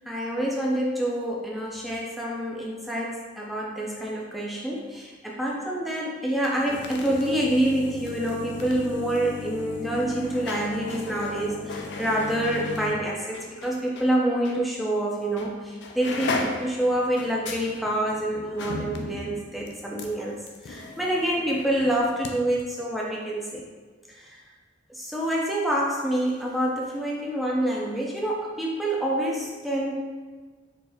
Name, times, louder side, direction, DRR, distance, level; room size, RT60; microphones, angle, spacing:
voice 1, 0.1-20.4 20.6-23.7 24.1-24.4 24.9-30.0, right 1 dB, ahead, -4 dB, 0.5 m, -27 dB
sound 1, 6.3-14.1 14.4-14.6 15.4-15.5 15.8-22.3 22.6-22.7, left 3 dB, 65° left, 0.4 m, -36 dB
4.3 x 2.5 x 3.4 m, 1.4 s
head